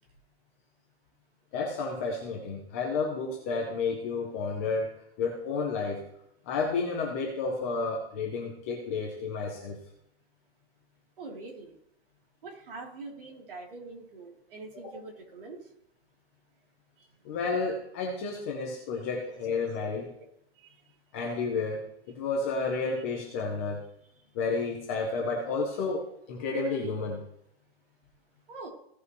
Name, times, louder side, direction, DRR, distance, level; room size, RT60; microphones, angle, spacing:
voice 1, 1.5-4.9 5.2-6.0 6.5-9.8 14.8-15.0 17.2-20.1 21.1-21.8 22.1-23.8 24.3-27.2, left 4 dB, 15° left, 0 dB, 0.7 m, -31 dB
voice 2, 11.2-11.8 12.4-15.6 18.9-19.0 19.8-19.9 20.2-20.3 20.6-20.8 28.5-28.7, right 3 dB, 55° right, -1 dB, 3.3 m, -44 dB
16.5 x 5.6 x 3.1 m, 0.76 s
hypercardioid pair, 180°, 32 cm